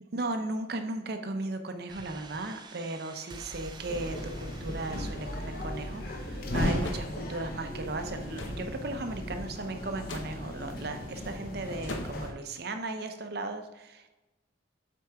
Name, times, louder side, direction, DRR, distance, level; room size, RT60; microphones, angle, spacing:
voice 1, 0.1-14.1, right 2 dB, 55° right, 7 dB, 0.7 m, -36 dB
sound 1, 1.9-9.6, right 1 dB, 20° right, 0.4 m, -45 dB
sound 2, 3.9-12.3, left 1 dB, 50° left, 0.9 m, -36 dB
sound 3, 6.8-7.1 8.4-8.6 10.0-10.4 11.9-12.3, left 2 dB, 80° left, 0.8 m, -38 dB
7.5 x 4.5 x 3.6 m, 1.1 s
head